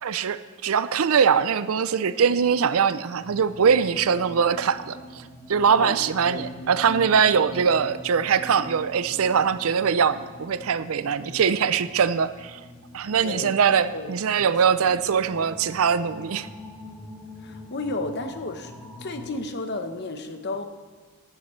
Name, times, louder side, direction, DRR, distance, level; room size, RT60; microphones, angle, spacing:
voice 1, 0.0-5.2 5.5-12.6 12.9-16.5, right 6 dB, 65° right, 14 dB, 0.5 m, -22 dB
sound 1, 3.2-19.4, left 1 dB, 5° left, 1.9 m, -44 dB
voice 2, 13.2-13.5 13.9-14.5 14.8-15.0 17.4-18.7 19.0-20.6, left 2 dB, 50° left, 7 dB, 1.0 m, -33 dB
14.5 x 12.0 x 3.2 m, 1.5 s
head